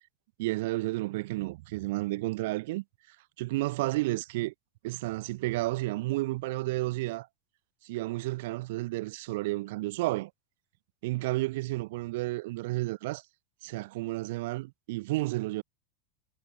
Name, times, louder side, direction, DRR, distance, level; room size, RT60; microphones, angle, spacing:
voice 1, 0.4-4.5 4.8-7.3 7.8-10.3 11.0-13.2 13.6-15.6, right 20 dB, 60° right, 2.6 m, -32 dB
supercardioid pair, 175°, 0 cm